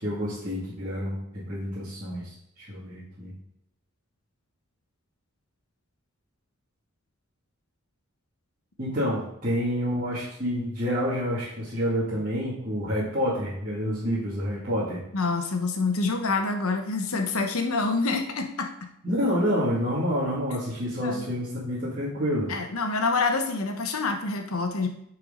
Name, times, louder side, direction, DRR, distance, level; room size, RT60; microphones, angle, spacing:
voice 1, 0.0-2.3 2.6-3.3 8.8-15.0 19.0-22.5, equal, 40° right, -10 dB, 2.2 m, -28 dB
voice 2, 15.1-18.7 21.0-21.3 22.5-24.9, left 3 dB, 80° left, 5 dB, 1.1 m, -26 dB
9.5 x 4.7 x 3.8 m, 0.75 s
head